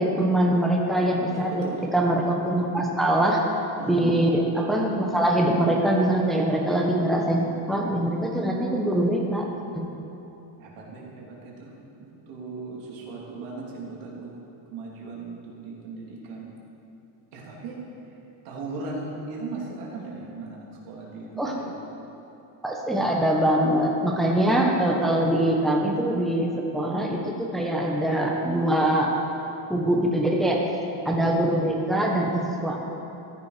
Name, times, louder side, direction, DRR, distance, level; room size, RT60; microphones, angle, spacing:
voice 1, 0.0-1.6 1.9-3.4 3.9-9.5 9.7-9.9 21.4-21.5 22.6-29.1 29.7-30.6 31.0-32.8, right 1 dB, ahead, -1 dB, 1.1 m, -23 dB
voice 2, 1.3-1.8 3.8-4.2 10.6-11.7 12.0-14.3 14.7-16.5 17.3-17.8 18.4-21.7, right 3 dB, 85° right, -3 dB, 3.2 m, -37 dB
14.5 x 10.5 x 5.1 m, 2.9 s
cardioid pair, 155°, 49 cm